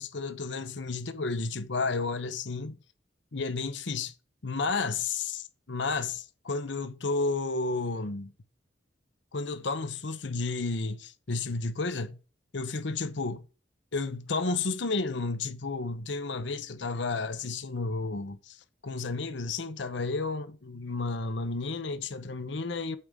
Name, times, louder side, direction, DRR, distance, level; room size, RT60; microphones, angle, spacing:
voice 1, 0.0-2.8 3.3-4.1 4.4-8.3 9.3-12.2 12.5-13.4 13.9-23.0, left 3 dB, 65° left, 0.8 m, -32 dB
8.5 x 3.6 x 6.4 m
head